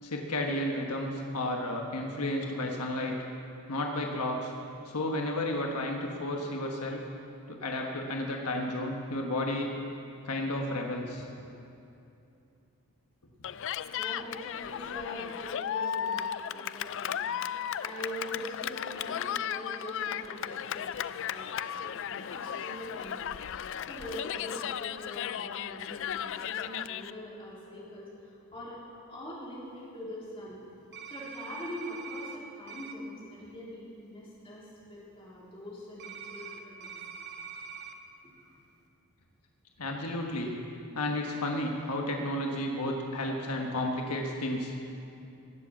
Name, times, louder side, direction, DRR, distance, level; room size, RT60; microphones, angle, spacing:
voice 1, 0.0-3.1 3.7-4.5 4.8-7.0 7.5-9.7 10.2-11.3 39.8-40.6 40.9-44.7, left 1 dB, 90° left, 1 dB, 1.3 m, -32 dB
Cheering, 13.4-27.1, left 9 dB, 55° left, 0.3 m, -35 dB
voice 2, 13.9-17.2 17.8-20.9 21.3-21.5 21.8-23.4 23.8-28.8 29.1-30.6 31.0-36.9 38.2-38.5, equal, 25° left, -7 dB, 3.8 m, -43 dB
sound 1, 30.9-32.4 32.7-32.9 36.0-37.9, right 7 dB, 50° right, 0.9 m, -43 dB
18.0 x 7.6 x 7.3 m, 2.7 s
head